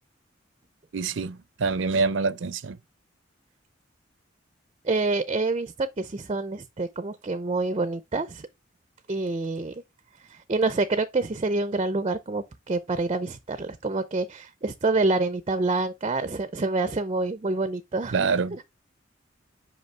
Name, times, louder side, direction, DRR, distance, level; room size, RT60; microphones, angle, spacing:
voice 1, 0.9-2.8 18.1-18.6, right 4 dB, 75° right, 0.5 m, -26 dB
voice 2, 4.8-8.5 9.1-9.7 10.3-18.2, right 3 dB, 30° right, 0.5 m, -27 dB
5.5 x 5.3 x 3.2 m
head